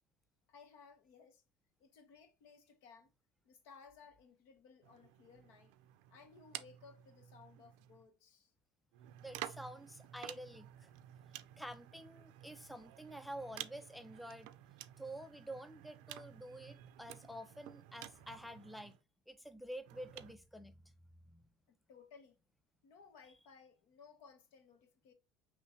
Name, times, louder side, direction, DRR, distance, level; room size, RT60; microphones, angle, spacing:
voice 1, 0.5-1.4 1.8-3.1 3.4-5.7 6.1-8.5 21.7-22.4 22.8-25.1, left 5 dB, 75° left, 1.1 m, -60 dB
sound 1, 4.8-8.1 8.9-19.0 19.8-20.3, right 13 dB, 85° right, 0.4 m, -52 dB
voice 2, 9.2-10.9 11.6-14.5 15.0-19.0 19.3-20.9 21.3-21.4, equal, ahead, 0.3 m, -49 dB
5.3 x 3.0 x 2.9 m
cardioid pair, 135°, 3 cm